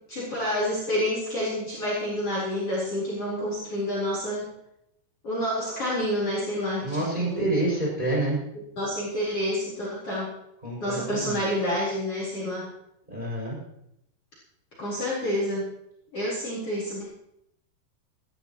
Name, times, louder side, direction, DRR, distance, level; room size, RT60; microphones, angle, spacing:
voice 1, 0.1-4.5 5.2-7.4 8.8-10.3 10.8-12.7 14.8-15.7 16.1-17.1, equal, 35° left, -5 dB, 4.8 m, -28 dB
voice 2, 6.8-8.4 10.6-11.4 13.1-13.6, right 2 dB, 10° right, -4 dB, 6.8 m, -27 dB
20.5 x 14.5 x 3.1 m, 0.78 s
omnidirectional pair, 5.1 m